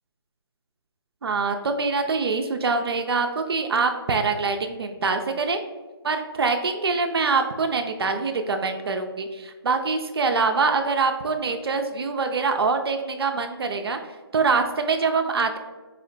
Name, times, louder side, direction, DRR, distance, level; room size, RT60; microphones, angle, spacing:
voice 1, 1.2-5.6 6.0-14.0 14.3-15.6, right 4 dB, 65° right, 5 dB, 0.4 m, -24 dB
4.2 x 2.1 x 3.8 m, 1.3 s
figure-of-eight pair, 155°, 14 cm